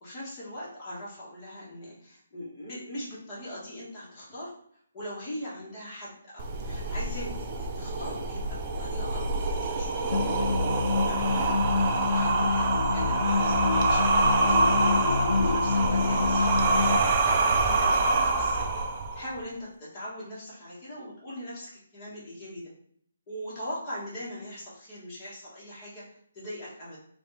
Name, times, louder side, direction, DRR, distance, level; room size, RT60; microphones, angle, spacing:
voice 1, 0.0-4.5 4.9-11.5 11.8-14.9 15.2-18.7 19.1-22.7 23.3-27.0, equal, 20° left, -7 dB, 1.5 m, -41 dB
sound 1, 6.4-19.4, right 3 dB, 25° right, 0.4 m, -26 dB
sound 2, 10.1-17.0, left 4 dB, 70° left, 0.4 m, -27 dB
4.3 x 2.7 x 4.1 m, 0.64 s
hypercardioid pair, 175°, 0 cm